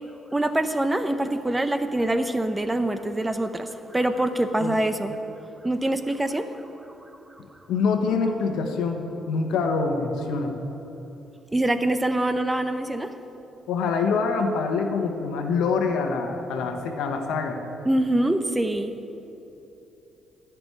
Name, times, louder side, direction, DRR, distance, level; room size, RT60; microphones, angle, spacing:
voice 1, 0.3-5.1 5.6-6.5 11.5-13.1 17.8-18.9, right 1 dB, 15° right, 9 dB, 0.7 m, -24 dB
voice 2, 7.7-10.6 13.7-17.6, left 4 dB, 85° left, 5 dB, 1.2 m, -25 dB
14.5 x 6.1 x 9.5 m, 3.0 s
cardioid pair, 90°, 0 cm